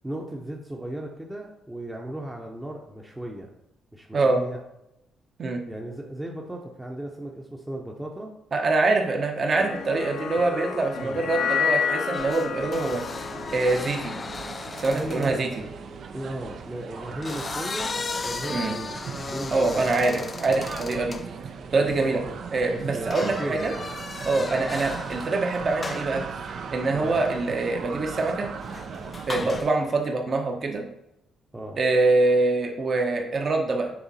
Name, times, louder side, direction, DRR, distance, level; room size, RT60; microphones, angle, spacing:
voice 1, 0.0-3.5 3.9-4.6 5.7-8.3 11.0-11.2 14.9-15.5 16.1-17.9 18.2-19.0 19.2-19.9 21.8-21.9 22.2-22.4 22.7-23.7 24.4-24.7 26.9-27.2 29.4-29.6 31.5-31.8, right 1 dB, 10° right, -1 dB, 0.8 m, -36 dB
voice 2, 8.5-13.0 13.5-14.1 14.8-15.5 18.5-18.7 19.5-21.2 21.7-22.2 22.5-23.7 24.2-28.5 29.3-30.9 31.8-33.9, right 3 dB, 45° right, 2 dB, 1.0 m, -24 dB
sound 1, 9.5-15.9, left 7 dB, 75° left, 0.6 m, -31 dB
sound 2, 12.1-15.4 17.0-21.3 23.1-25.5 25.8-26.2 28.6-29.8, left 4 dB, 35° left, 0.4 m, -36 dB
sound 3, 12.5-29.6, right 6 dB, 60° right, 0.5 m, -38 dB
6.8 x 3.5 x 4.2 m, 0.86 s
cardioid pair, 90°, 0 cm